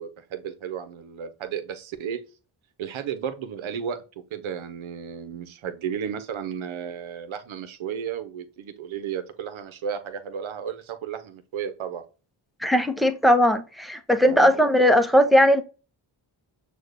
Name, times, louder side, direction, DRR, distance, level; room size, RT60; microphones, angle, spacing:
voice 1, 0.0-2.2 2.8-4.0 4.3-12.0 14.2-14.5, right 8 dB, 85° right, 0.9 m, -33 dB
voice 2, 12.6-15.6, equal, ahead, 0.7 m, -18 dB
6.4 x 2.5 x 2.5 m
cardioid pair, 65°, 47 cm